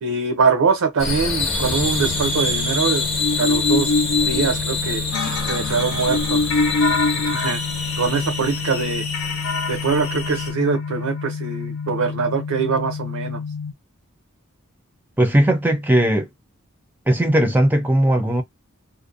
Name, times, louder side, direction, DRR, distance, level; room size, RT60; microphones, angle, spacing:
voice 1, 0.0-3.1 3.4-3.9 4.3-5.0 5.5-6.4 7.2-7.6 8.0-9.1 9.7-13.4, right 5 dB, 85° right, 0.5 m, -23 dB
sound 1, 1.0-10.5, left 3 dB, 25° left, 0.7 m, -26 dB
sound 2, 1.6-13.7, left 3 dB, 65° left, 0.4 m, -26 dB
sound 3, 5.1-11.2, left 4 dB, 85° left, 0.8 m, -30 dB
voice 2, 15.2-16.3 17.1-18.4, right 1 dB, 10° right, 0.4 m, -17 dB
2.5 x 2.0 x 2.4 m
head